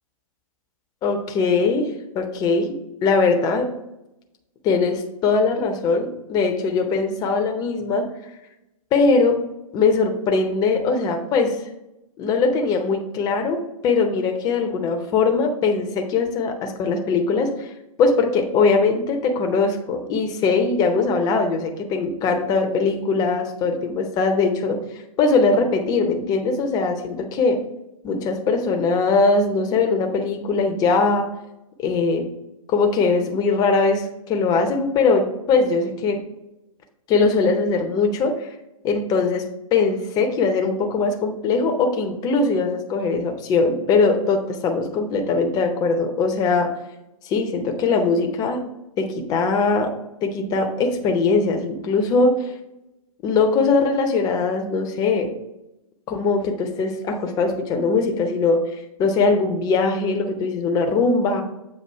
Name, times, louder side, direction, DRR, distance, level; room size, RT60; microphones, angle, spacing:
voice 1, 1.0-3.7 4.6-8.1 8.9-9.4 9.7-11.6 12.2-17.7 18.0-24.8 25.2-27.6 28.0-31.3 31.8-32.3 32.7-36.2 37.1-38.5 38.8-39.4 39.7-46.7 47.2-48.6 49.0-49.9 50.2-52.5 53.2-55.3 56.1-58.6 59.0-61.4, left 4 dB, 20° left, 4 dB, 0.7 m, -21 dB
7.6 x 2.6 x 5.5 m, 0.92 s
figure-of-eight pair, 120°, 18 cm